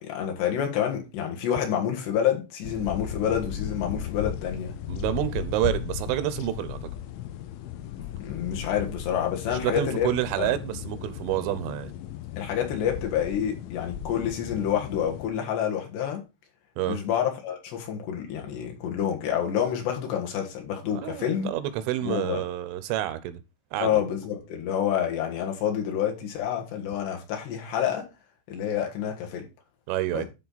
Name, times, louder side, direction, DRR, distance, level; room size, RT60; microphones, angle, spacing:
voice 1, 0.0-4.8 8.2-10.1 10.4-10.6 12.4-16.2 16.8-21.5 22.0-22.4 23.8-28.1 28.5-29.5 30.1-30.2, left 9 dB, 70° left, 3.4 m, -28 dB
sound 1, 2.6-15.3, left 10 dB, 85° left, 3.4 m, -36 dB
voice 2, 4.9-6.8 9.5-11.9 16.8-17.0 20.9-23.4 23.7-23.9 29.9-30.2, right 13 dB, 85° right, 3.3 m, -28 dB
12.5 x 4.5 x 4.0 m
omnidirectional pair, 5.5 m